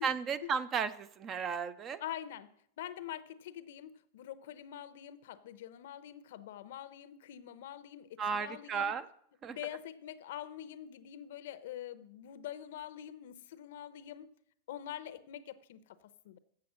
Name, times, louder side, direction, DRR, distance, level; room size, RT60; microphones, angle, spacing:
voice 1, 0.0-2.0 8.2-9.1 9.4-9.6, right 6 dB, 25° right, 16 dB, 0.4 m, -34 dB
voice 2, 2.0-8.9 9.5-14.3 14.7-16.4, left 11 dB, 70° left, 14 dB, 0.7 m, -45 dB
7.6 x 7.6 x 7.3 m, 0.68 s
supercardioid pair, 160°, 0 cm